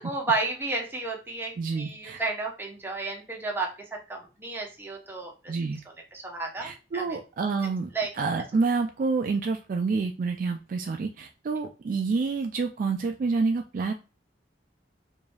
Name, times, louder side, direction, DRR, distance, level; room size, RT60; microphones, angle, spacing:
voice 1, 0.0-3.7 4.1-5.5 6.1-7.2 7.9-8.1, right 3 dB, 10° right, 0 dB, 0.8 m, -32 dB
voice 2, 1.6-2.2 5.5-5.8 6.6-13.9, right 4 dB, 45° right, 5 dB, 0.3 m, -28 dB
4.9 x 2.6 x 2.3 m, 0.33 s
head